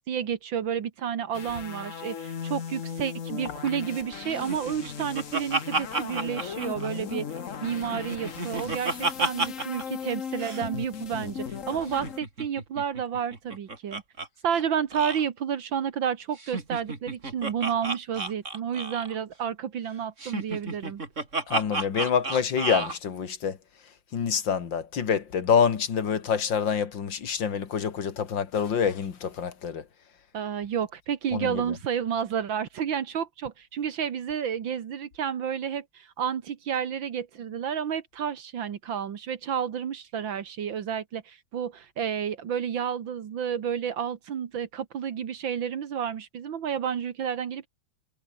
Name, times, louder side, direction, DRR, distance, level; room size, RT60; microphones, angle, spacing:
voice 1, 0.1-7.3 7.6-14.0 14.4-21.0 30.3-47.7, right 8 dB, 75° right, 2.2 m, -31 dB
sound 1, 1.3-12.2, left 7 dB, 45° left, 1.5 m, -37 dB
Laughter, 4.5-7.4 7.7-9.8 10.1-10.2 10.4-10.6 11.9-14.3 14.5-14.6 14.9-15.2 16.4-19.2 20.2-23.0, right 3 dB, 35° right, 3.8 m, -31 dB
voice 2, 21.5-23.6 24.1-29.9 31.3-31.8, left 7 dB, 70° left, 2.6 m, -26 dB
omnidirectional pair, 2.1 m